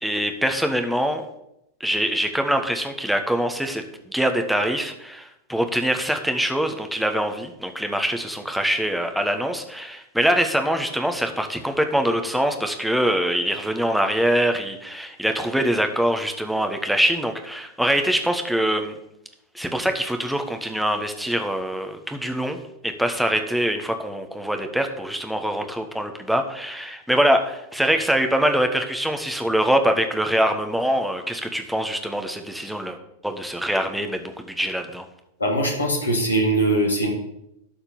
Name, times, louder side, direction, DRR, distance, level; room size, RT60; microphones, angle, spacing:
voice 1, 0.0-1.3 1.8-18.9 19.5-22.6 22.8-33.0 33.2-35.1, equal, ahead, 5 dB, 1.2 m, -24 dB
voice 2, 35.4-37.1, right 1 dB, 75° left, 1 dB, 2.5 m, -21 dB
12.0 x 4.4 x 7.1 m, 0.81 s
figure-of-eight pair, 90°, 0 cm